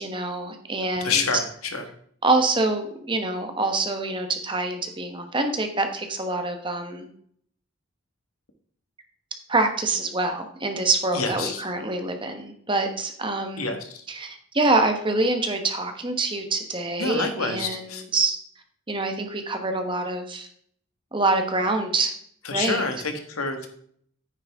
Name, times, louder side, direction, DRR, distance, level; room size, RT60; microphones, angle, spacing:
voice 1, 0.0-1.2 2.2-7.1 9.5-13.8 14.1-18.4 18.9-20.5 21.1-22.1 22.5-22.9, right 2 dB, 25° right, 5 dB, 1.2 m, -25 dB
voice 2, 1.0-1.8 11.1-11.6 13.6-14.0 17.0-18.0 22.5-23.7, left 4 dB, 85° left, 6 dB, 1.7 m, -28 dB
9.7 x 9.4 x 3.7 m, 0.63 s
head